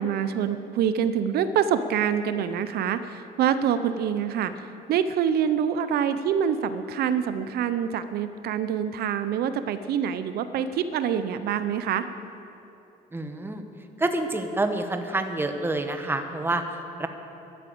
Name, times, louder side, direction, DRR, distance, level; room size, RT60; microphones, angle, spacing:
voice 1, 0.0-4.6 4.9-12.1, right 8 dB, 70° right, 11 dB, 0.6 m, -26 dB
voice 2, 13.1-13.6 14.0-17.1, right 2 dB, 15° right, 7 dB, 1.0 m, -28 dB
12.5 x 10.0 x 7.7 m, 2.8 s
cardioid pair, 110°, 17 cm